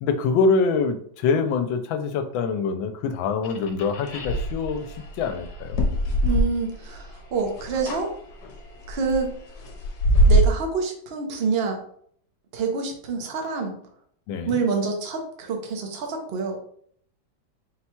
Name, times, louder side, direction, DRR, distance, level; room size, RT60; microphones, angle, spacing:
voice 1, 0.0-4.9 5.2-5.8 14.3-14.6, left 4 dB, 80° left, 7 dB, 1.3 m, -24 dB
sound 1, 3.4-7.1 7.3-8.0 8.4-10.5, right 1 dB, 60° left, 1.2 m, -22 dB
voice 2, 6.2-8.1 8.9-9.3 10.3-11.8 12.5-13.7 14.4-16.6, right 4 dB, 70° right, 2 dB, 0.5 m, -27 dB
4.2 x 2.2 x 4.3 m, 0.62 s
omnidirectional pair, 2.1 m